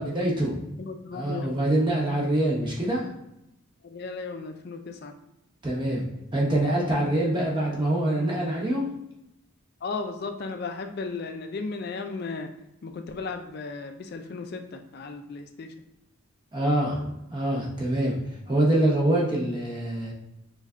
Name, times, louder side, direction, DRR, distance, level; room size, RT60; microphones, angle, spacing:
voice 1, 0.0-0.6 1.1-3.1 5.6-6.0 6.3-8.9 16.5-18.1 18.5-20.1, right 1 dB, 20° right, -3 dB, 0.7 m, -25 dB
voice 2, 0.8-1.5 3.9-5.1 9.8-12.5 12.8-14.6 14.9-15.7, left 4 dB, 45° left, 6 dB, 0.3 m, -35 dB
3.2 x 2.3 x 3.6 m, 0.86 s
head